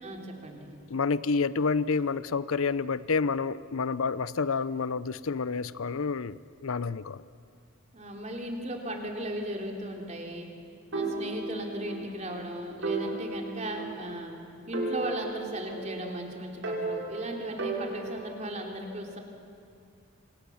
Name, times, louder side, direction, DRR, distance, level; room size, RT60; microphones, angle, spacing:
voice 1, 0.0-0.7 7.9-10.5 10.9-14.3 14.7-19.2, right 1 dB, 35° right, 2 dB, 3.3 m, -36 dB
voice 2, 0.9-7.2, left 4 dB, 85° left, 17 dB, 0.7 m, -29 dB
sound 1, 10.9-12.1 12.4-12.5 12.8-14.3 14.7-16.2 16.6-18.5, right 3 dB, 65° right, 5.3 m, -34 dB
28.5 x 26.0 x 7.2 m, 2.5 s
head